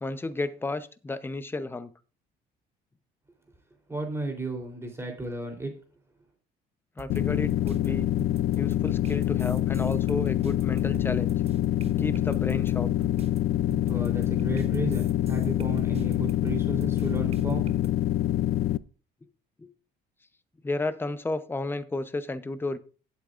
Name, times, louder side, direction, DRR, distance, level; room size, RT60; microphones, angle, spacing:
voice 1, 0.0-1.9 7.0-8.1 8.6-11.4 12.0-12.9 19.6-19.7 20.6-22.8, left 2 dB, 15° left, 0.8 m, -32 dB
voice 2, 3.9-5.7 13.9-17.7, right 2 dB, 15° right, 3.5 m, -34 dB
sound 1, 7.0-17.9, right 5 dB, 35° right, 1.0 m, -45 dB
sound 2, 7.1-18.8, left 13 dB, 65° left, 0.5 m, -26 dB
17.0 x 8.3 x 2.5 m
cardioid pair, 110°, 17 cm